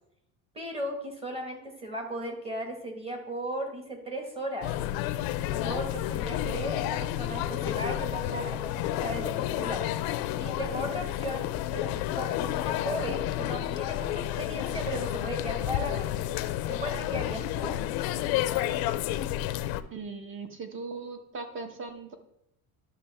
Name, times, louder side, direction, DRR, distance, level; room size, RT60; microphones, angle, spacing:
voice 1, 0.5-4.7 5.5-9.9 10.3-16.3 16.7-17.8, right 1 dB, 15° right, 3 dB, 1.4 m, -36 dB
sound 1, 4.6-19.8, left 13 dB, 75° left, 0.6 m, -30 dB
voice 2, 19.9-22.2, right 4 dB, 35° right, 7 dB, 1.0 m, -39 dB
11.0 x 6.4 x 3.4 m, 0.80 s
cardioid pair, 155°, 37 cm